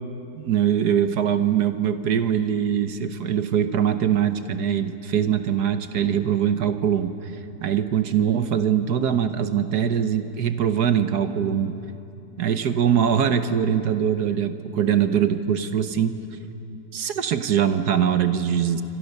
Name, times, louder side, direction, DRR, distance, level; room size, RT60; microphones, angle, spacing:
voice 1, 0.4-7.3 7.6-11.8 12.4-16.2 16.9-18.8, right 8 dB, 60° right, 10 dB, 1.4 m, -22 dB
28.0 x 24.5 x 6.7 m, 2.8 s
omnidirectional pair, 2.0 m